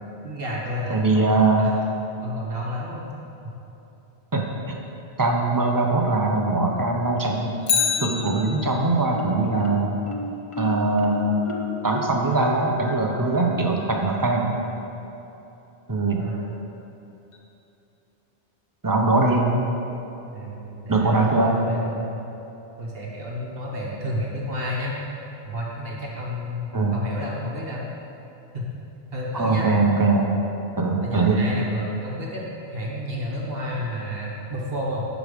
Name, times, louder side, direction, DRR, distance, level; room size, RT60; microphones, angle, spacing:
voice 1, 0.2-1.7 2.2-3.1 3.4-3.6 13.4-13.6 15.9-16.5 20.3-22.2 22.8-25.0 25.4-27.9 28.5-28.7 29.1-29.7 31.0-32.4 32.7-35.1, equal, 55° right, -3 dB, 1.3 m, -31 dB
voice 2, 0.9-1.7 4.3-4.4 5.2-7.6 8.0-9.9 10.6-11.4 11.8-14.6 15.9-16.2 18.8-19.5 20.9-21.6 26.7-27.0 29.3-30.3 30.8-31.4, right 3 dB, 20° right, 0 dB, 0.9 m, -21 dB
Bicycle, 7.6-9.0 17.3-17.4, left 6 dB, 85° left, 1.1 m, -26 dB
Marimba xylophone, 7.8-8.7 9.1-14.7, left 1 dB, 35° left, 0.6 m, -35 dB
11.5 x 5.1 x 5.2 m, 3.0 s
omnidirectional pair, 1.2 m